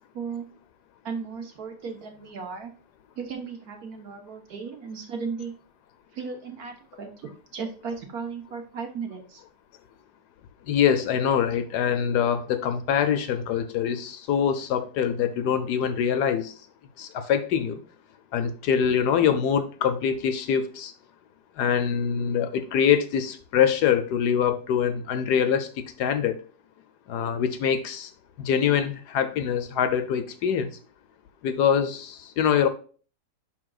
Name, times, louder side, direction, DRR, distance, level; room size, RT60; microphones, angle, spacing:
voice 1, 0.1-0.5 1.0-2.7 3.2-5.5 6.1-9.4, right 5 dB, 60° right, 1.5 m, -36 dB
voice 2, 10.7-16.5 17.0-17.8 18.3-20.9 21.6-26.3 27.1-28.1 28.4-30.7 31.4-32.7, left 8 dB, 70° left, 1.1 m, -24 dB
11.0 x 3.8 x 2.4 m
omnidirectional pair, 2.0 m